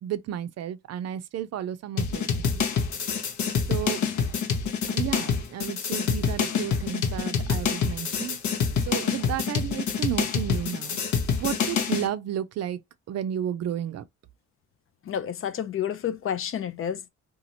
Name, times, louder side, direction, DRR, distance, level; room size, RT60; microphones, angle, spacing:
voice 1, 0.0-2.6 3.7-4.0 4.9-8.4 8.8-11.0 11.3-12.8 13.1-14.1, right 10 dB, 60° right, 0.4 m, -32 dB
sound 1, 2.0-12.1, left 6 dB, 75° left, 0.8 m, -27 dB
voice 2, 15.0-17.1, left 9 dB, 45° left, 0.5 m, -30 dB
2.9 x 2.4 x 2.7 m
cardioid pair, 90°, 30 cm